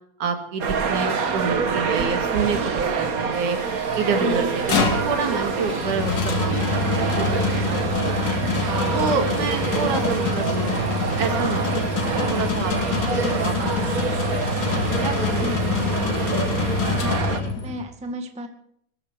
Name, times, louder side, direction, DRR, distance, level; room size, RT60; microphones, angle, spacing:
voice 1, 0.2-3.6 4.0-8.4 8.9-10.8 11.2-14.2 14.5-15.4, right 5 dB, 75° right, 5 dB, 3.6 m, -29 dB
sound 1, 0.6-17.4, right 5 dB, 55° right, 1.0 m, -26 dB
sound 2, 3.3-17.2, left 2 dB, 50° left, 6.8 m, -44 dB
voice 2, 4.2-4.5 15.4-15.7 17.0-18.5, equal, 5° right, 5 dB, 1.1 m, -33 dB
sound 3, 4.4-17.8, left 4 dB, 80° left, 4.0 m, -25 dB
20.0 x 14.0 x 4.7 m, 0.70 s
omnidirectional pair, 3.5 m